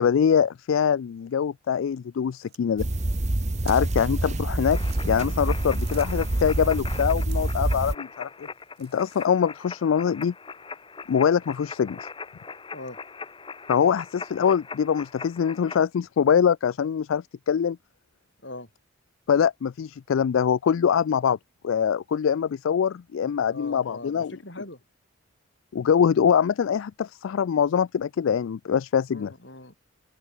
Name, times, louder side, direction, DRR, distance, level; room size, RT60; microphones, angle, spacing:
voice 1, 0.0-2.9 3.6-4.8 5.1-8.5 8.8-10.3 11.1-12.0 13.7-17.8 19.3-21.4 21.6-24.3 25.7-29.3, left 7 dB, 75° left, 0.3 m, -23 dB
sound 1, 2.3-4.1 4.6-6.4 7.2-7.7 8.1-9.5 10.1-10.3, right 13 dB, 50° right, 7.6 m, -53 dB
sound 2, 2.8-7.9, right 1 dB, 35° right, 1.0 m, -26 dB
sound 3, 4.7-15.8, left 5 dB, 25° left, 0.9 m, -41 dB
voice 2, 23.5-24.8 29.1-29.7, left 2 dB, 55° left, 6.1 m, -40 dB
open air
head